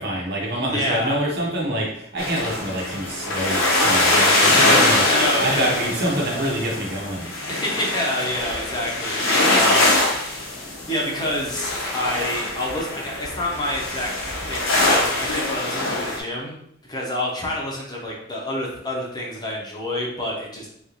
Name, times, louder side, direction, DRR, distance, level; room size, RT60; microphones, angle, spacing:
voice 1, 0.0-7.3, right 1 dB, 55° right, -3 dB, 1.0 m, -26 dB
voice 2, 0.7-1.2 5.1-6.5 7.5-14.1 14.5-16.5 16.9-20.7, left 1 dB, 20° left, -3 dB, 0.8 m, -28 dB
sound 1, 2.2-16.2, left 2 dB, 80° left, 1.0 m, -22 dB
3.9 x 2.5 x 3.0 m, 0.72 s
head